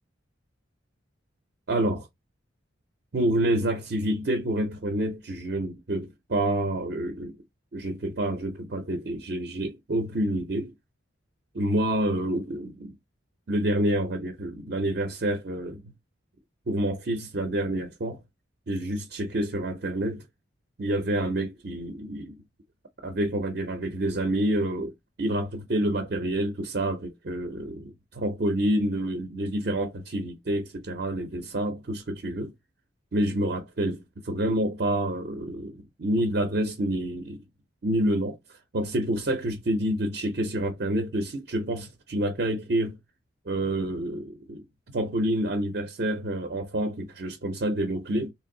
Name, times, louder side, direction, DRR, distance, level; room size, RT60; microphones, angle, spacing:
voice 1, 1.7-2.1 3.1-7.3 7.7-10.7 11.5-12.9 13.5-15.9 16.7-18.2 18.7-20.2 20.8-22.4 23.0-24.9 25.2-32.5 33.1-37.4 37.8-38.4 38.7-43.0 43.5-44.6 44.9-48.3, right 1 dB, 50° right, 0.5 m, -28 dB
3.2 x 2.6 x 3.7 m
head